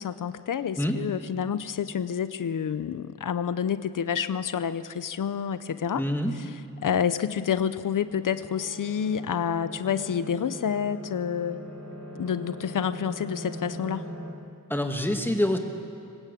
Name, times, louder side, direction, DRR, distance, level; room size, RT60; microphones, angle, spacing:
voice 1, 0.0-6.0 6.3-11.6 12.2-14.1, left 8 dB, 85° left, 13 dB, 0.8 m, -29 dB
voice 2, 5.9-6.3 14.7-15.6, left 1 dB, 5° left, 3 dB, 2.5 m, -26 dB
sound 1, 7.7-14.3, equal, 60° right, 4.9 m, -41 dB
24.0 x 19.5 x 8.6 m, 2.4 s
wide cardioid pair, 65°, 31 cm